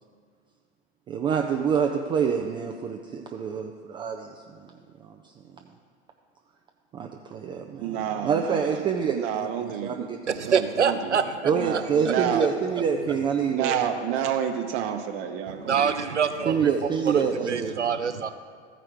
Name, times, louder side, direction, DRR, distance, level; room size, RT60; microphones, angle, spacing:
voice 1, 1.1-4.7 5.0-5.2 6.9-10.2 11.5-13.8 16.5-17.9, right 6 dB, 15° right, 3 dB, 0.4 m, -26 dB
voice 2, 7.8-8.8 9.1-10.0 10.5-11.0 11.5-12.4 13.4-15.8, right 9 dB, 40° right, 5 dB, 0.8 m, -29 dB
voice 3, 10.3-12.5 13.1-13.2 15.5-18.3, right 6 dB, 85° right, 10 dB, 0.6 m, -27 dB
14.5 x 5.1 x 4.6 m, 2.1 s
figure-of-eight pair, 90°, 34 cm